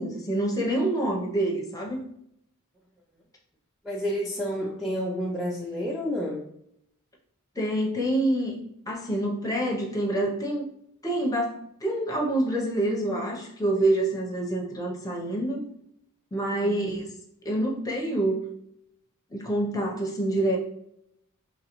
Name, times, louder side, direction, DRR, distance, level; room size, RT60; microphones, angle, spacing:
voice 1, 0.0-2.0 7.6-8.6 8.9-10.6 11.0-15.6 16.3-17.1 17.4-18.4 19.3-20.6, right 1 dB, 15° left, -1 dB, 0.8 m, -27 dB
voice 2, 3.8-6.5 16.5-17.0, equal, ahead, -3 dB, 0.4 m, -30 dB
3.7 x 3.2 x 3.0 m, 0.72 s
head